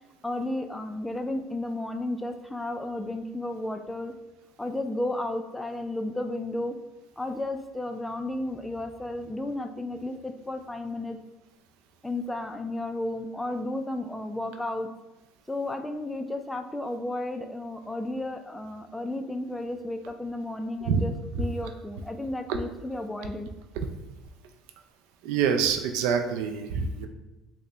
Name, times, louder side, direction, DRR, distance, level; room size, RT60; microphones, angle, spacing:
voice 1, 0.2-4.1 4.6-6.8 7.2-11.2 12.0-14.9 15.5-23.5, left 1 dB, 5° left, 7 dB, 0.3 m, -33 dB
voice 2, 25.2-27.1, right 7 dB, 80° right, 6 dB, 0.3 m, -26 dB
3.7 x 2.1 x 3.3 m, 1.0 s
supercardioid pair, 90°, 0 cm